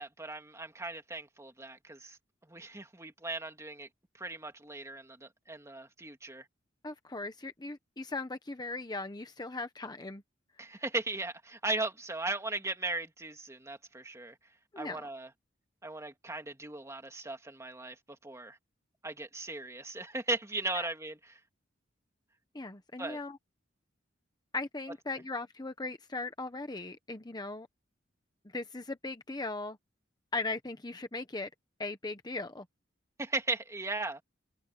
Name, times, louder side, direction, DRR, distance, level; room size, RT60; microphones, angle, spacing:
voice 1, 0.0-2.2 2.5-3.9 4.2-6.5 10.6-14.4 14.8-15.3 15.8-18.6 19.0-21.4 23.0-23.2 33.2-34.2, right 2 dB, 15° right, 2.5 m, -37 dB
voice 2, 6.8-10.2 14.7-15.0 20.7-20.9 22.5-23.4 24.5-27.7 28.5-29.8 30.3-31.5 31.8-32.7, left 3 dB, 20° left, 1.0 m, -38 dB
head